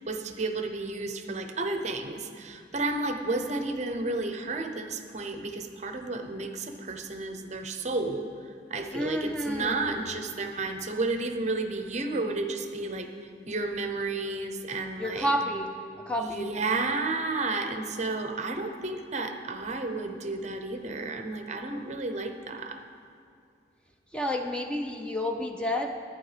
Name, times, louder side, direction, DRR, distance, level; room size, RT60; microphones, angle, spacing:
voice 1, 0.0-8.3 8.7-13.1 13.5-15.3 16.2-22.8, right 3 dB, 40° right, 6 dB, 0.7 m, -32 dB
voice 2, 8.9-10.2 15.0-16.7 24.1-26.0, equal, 5° left, 3 dB, 0.5 m, -31 dB
11.0 x 9.4 x 5.0 m, 2.4 s
head